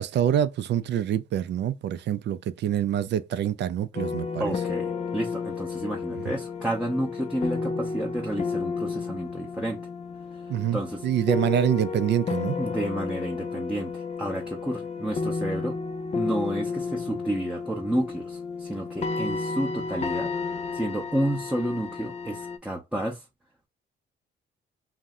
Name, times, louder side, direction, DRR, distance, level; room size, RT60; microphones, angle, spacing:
voice 1, 0.0-4.5 10.5-12.6, right 10 dB, 60° right, 0.4 m, -26 dB
sound 1, 3.9-22.6, left 4 dB, 35° left, 0.4 m, -32 dB
voice 2, 4.4-9.8 10.7-11.1 12.6-15.8 16.1-20.3 20.7-23.2, right 1 dB, 5° right, 0.6 m, -30 dB
2.7 x 2.1 x 3.5 m
cardioid pair, 90°, 20 cm